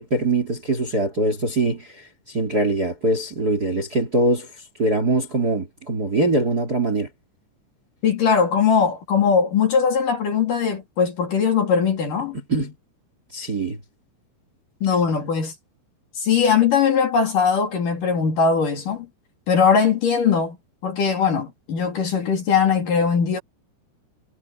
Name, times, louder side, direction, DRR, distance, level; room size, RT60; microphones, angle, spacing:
voice 1, 0.0-4.5 4.8-7.1 12.5-12.7 13.3-13.8, right 2 dB, 25° right, 2.7 m, -22 dB
voice 2, 8.0-12.4 14.8-15.5 16.2-19.1 19.5-20.6 20.8-23.4, left 6 dB, 50° left, 3.8 m, -20 dB
omnidirectional pair, 5.4 m